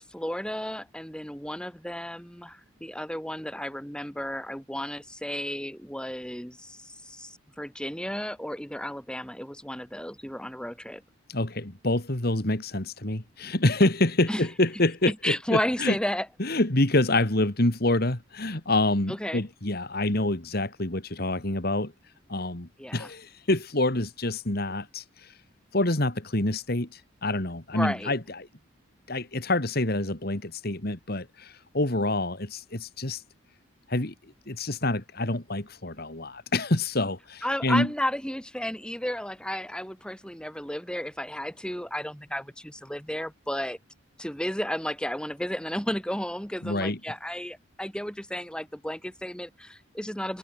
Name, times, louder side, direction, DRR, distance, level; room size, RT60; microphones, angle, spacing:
voice 1, 0.0-11.0 14.3-14.5 15.1-16.3 19.1-19.4 22.8-23.1 27.7-28.1 37.4-43.8 44.2-50.4, equal, 5° left, 4.0 m, -33 dB
voice 2, 11.3-16.0 16.4-21.9 22.3-25.0 25.7-28.2 29.1-33.2 33.9-34.1 34.5-37.9 46.6-47.0, left 2 dB, 50° left, 2.5 m, -27 dB
head